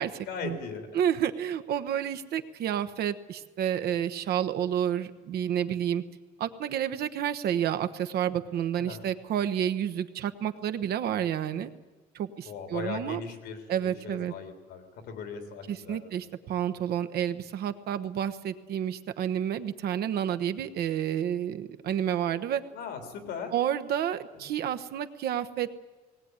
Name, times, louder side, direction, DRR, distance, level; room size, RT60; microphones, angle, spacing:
voice 1, 0.3-0.9 8.7-9.0 12.4-16.0 22.7-23.6 24.3-24.5, left 6 dB, 80° left, 6 dB, 3.5 m, -39 dB
voice 2, 0.9-6.0 6.4-11.7 12.1-13.2 13.7-14.3 15.7-22.6 23.5-25.8, right 10 dB, 70° right, 10 dB, 1.2 m, -30 dB
19.5 x 17.5 x 9.7 m, 1.3 s
cardioid pair, 110°, 17 cm